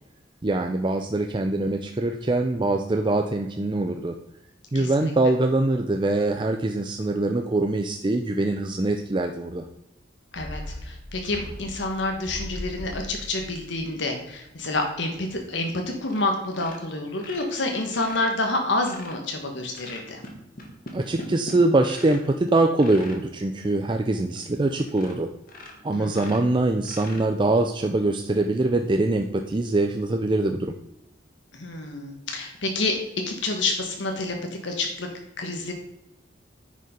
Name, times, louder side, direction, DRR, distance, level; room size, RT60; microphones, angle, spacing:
voice 1, 0.4-4.2 4.7-9.7 20.9-25.3 25.8-30.7, right 2 dB, 25° right, 5 dB, 0.5 m, -23 dB
voice 2, 4.7-5.1 10.3-15.7 16.0-20.2 25.9-26.3 31.5-33.0 33.3-34.3 34.6-35.1 35.4-35.7, left 2 dB, 65° left, 3 dB, 1.3 m, -28 dB
sound 1, 10.3-14.9 15.2-15.3, left 1 dB, 85° left, 3.1 m, -39 dB
sound 2, 16.1-16.3 16.5-19.2 19.7-22.3 22.7-23.2 23.8-23.9 24.3-24.4 24.9-25.2 25.5-27.6 29.1-29.2, left 1 dB, 50° left, 1.8 m, -42 dB
9.7 x 5.4 x 5.1 m, 0.87 s
head